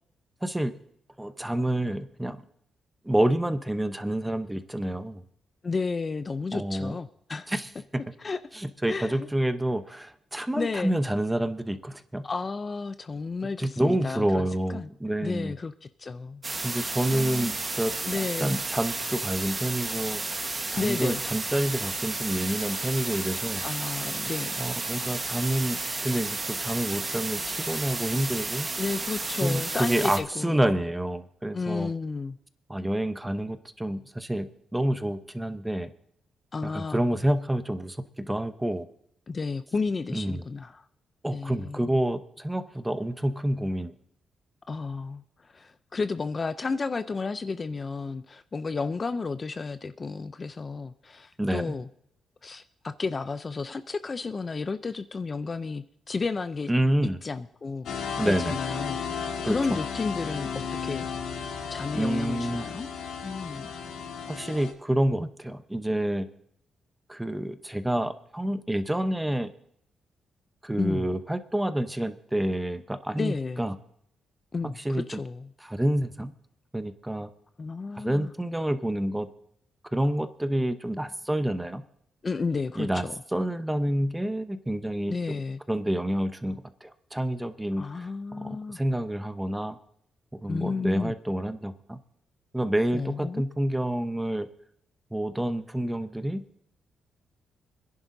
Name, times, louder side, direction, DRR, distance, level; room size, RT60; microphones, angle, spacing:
voice 1, 0.4-0.8 1.2-2.4 3.0-5.2 6.5-7.0 7.5-7.7 8.5-12.2 13.6-15.5 16.6-23.6 24.6-28.7 29.4-31.9 32.7-34.5 34.7-35.9 36.6-38.9 40.1-40.4 41.2-43.9 51.4-51.7 56.7-57.2 58.2-58.6 59.5-59.6 61.9-62.6 64.3-66.3 67.1-69.5 70.6-73.8 74.8-75.2 75.6-76.3 76.7-77.3 77.9-79.3 79.9-81.8 82.8-83.0 83.3-85.4 85.7-89.8 90.3-92.0 92.5-94.5 95.1-96.4, right 1 dB, 10° right, 10 dB, 0.8 m, -28 dB
voice 2, 5.6-7.6 8.2-8.4 8.9-9.3 10.5-10.9 12.2-14.9 15.2-16.6 17.1-17.6 18.0-18.6 20.8-21.2 23.6-24.5 28.8-30.7 31.5-32.4 36.5-37.0 39.3-40.9 41.3-42.0 44.7-51.9 52.4-56.7 57.2-60.5 60.8-61.1 61.7-62.9 63.2-63.7 70.8-71.1 73.2-73.6 74.5-75.5 77.6-78.3 82.2-83.2 85.1-85.6 87.8-88.8 90.5-91.1 92.9-93.4, left 4 dB, 35° left, 11 dB, 0.5 m, -32 dB
sound 1, 16.4-30.2, right 3 dB, 25° right, 1.3 m, -32 dB
sound 2, 57.9-64.7, left 6 dB, 85° left, 2.1 m, -34 dB
26.0 x 10.5 x 2.7 m, 0.71 s
cardioid pair, 105°, 0 cm